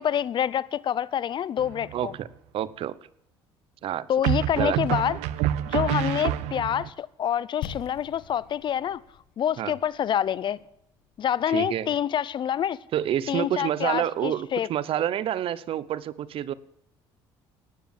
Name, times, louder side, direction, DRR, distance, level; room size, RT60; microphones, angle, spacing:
voice 1, 0.0-2.1 4.1-5.2 5.7-9.0 9.4-10.6 11.2-12.8 13.3-14.7, left 9 dB, 50° left, 0.7 m, -27 dB
sound 1, 1.6-2.1 4.2-6.9, right 12 dB, 90° right, 0.8 m, -27 dB
voice 2, 1.9-2.3 2.5-2.9 3.8-4.1 4.6-4.8 5.8-6.0 9.6-9.7 11.5-11.9 12.9-16.5, right 11 dB, 60° right, 0.9 m, -28 dB
sound 2, 7.6-11.5 11.8-11.9, left 10 dB, 85° left, 1.5 m, -43 dB
18.0 x 9.5 x 7.3 m
cardioid pair, 100°, 11 cm